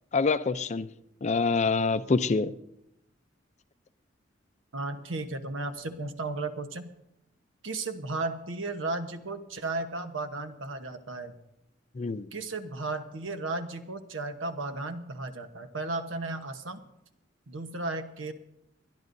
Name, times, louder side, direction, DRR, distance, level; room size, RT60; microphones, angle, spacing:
voice 1, 0.1-0.9 1.2-2.5 12.0-12.3, left 4 dB, 35° left, 0.5 m, -26 dB
voice 2, 4.7-6.9 7.6-11.3 12.3-16.8 17.5-18.3, right 2 dB, 85° right, 1.0 m, -34 dB
29.5 x 11.0 x 2.7 m
head